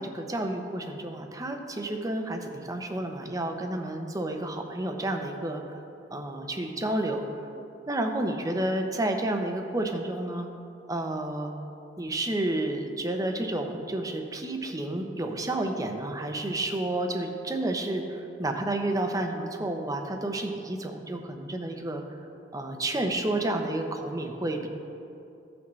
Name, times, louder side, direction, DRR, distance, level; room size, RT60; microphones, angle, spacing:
voice 1, 0.0-5.8 6.1-7.4 7.9-10.5 10.9-11.5 12.0-22.0 22.5-24.7, right 1 dB, 20° right, 4 dB, 0.7 m, -30 dB
15.5 x 5.9 x 3.2 m, 2.7 s
head